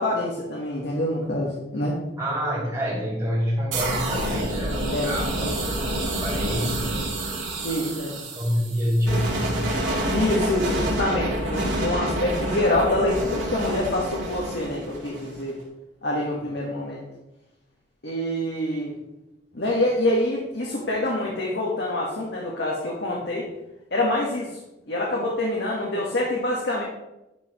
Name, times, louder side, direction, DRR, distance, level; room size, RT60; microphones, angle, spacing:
voice 1, 0.0-2.0 4.9-5.1 5.4-5.6 7.6-8.2 10.1-15.6 16.0-17.0 18.0-18.9 19.5-23.5 23.9-24.5 24.9-26.8, left 1 dB, 60° left, -3 dB, 1.4 m, -26 dB
voice 2, 2.2-5.5 6.0-7.0 7.7-7.9 8.3-9.8, equal, 15° right, -7 dB, 2.8 m, -27 dB
sound 1, 3.7-15.5, right 1 dB, 90° right, 2.8 m, -28 dB
10.5 x 5.6 x 3.0 m, 0.93 s
head